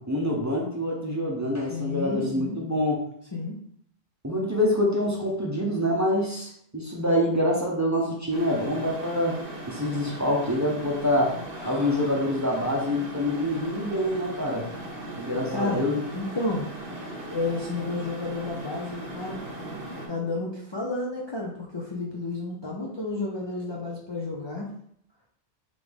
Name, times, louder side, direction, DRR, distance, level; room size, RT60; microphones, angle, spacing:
voice 1, 0.0-3.0 4.2-9.4 9.7-11.4 11.6-14.6 15.2-16.0, left 1 dB, 15° right, -3 dB, 0.7 m, -26 dB
voice 2, 1.7-2.6 3.3-3.6 11.5-12.1 15.5-15.9 16.1-16.7 17.3-19.4 20.1-24.7, left 2 dB, 35° left, -2 dB, 0.5 m, -31 dB
sound 1, 8.3-20.1, right 1 dB, 65° right, 1.3 m, -38 dB
3.8 x 3.5 x 3.5 m, 0.67 s
omnidirectional pair, 1.2 m